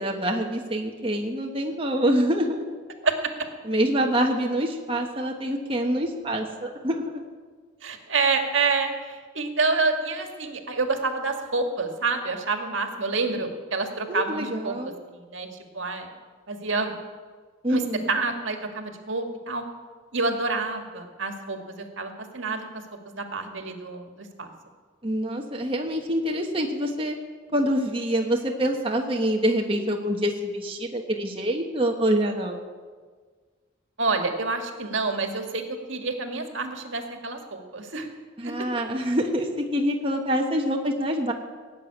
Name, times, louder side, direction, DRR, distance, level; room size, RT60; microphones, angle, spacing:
voice 1, 0.0-2.7 3.6-7.2 14.1-14.9 17.6-18.1 25.0-27.2 27.5-32.7 38.4-41.3, equal, 25° right, 1 dB, 1.2 m, -26 dB
voice 2, 7.8-14.7 15.1-15.5 15.7-16.1 16.5-17.0 17.7-17.8 18.1-19.6 20.1-22.7 23.1-24.5 34.0-35.6 35.9-38.1 38.4-38.5, right 3 dB, 75° right, 5 dB, 1.8 m, -28 dB
18.5 x 7.8 x 9.7 m, 1.5 s
head